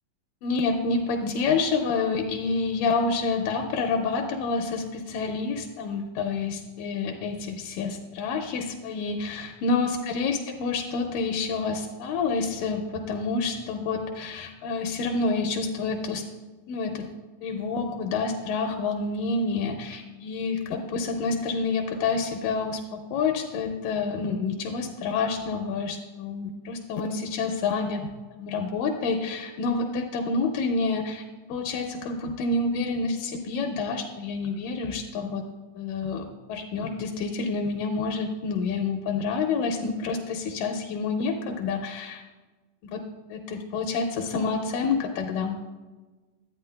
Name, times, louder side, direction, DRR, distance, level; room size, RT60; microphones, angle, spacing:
voice 1, 0.4-16.3 16.7-17.1 17.4-28.1 28.4-31.2 31.5-35.4 35.8-42.2 42.9-43.0 43.3-45.6, left 4 dB, 80° left, 4 dB, 2.1 m, -28 dB
10.5 x 8.8 x 2.2 m, 1.2 s
omnidirectional pair, 4.0 m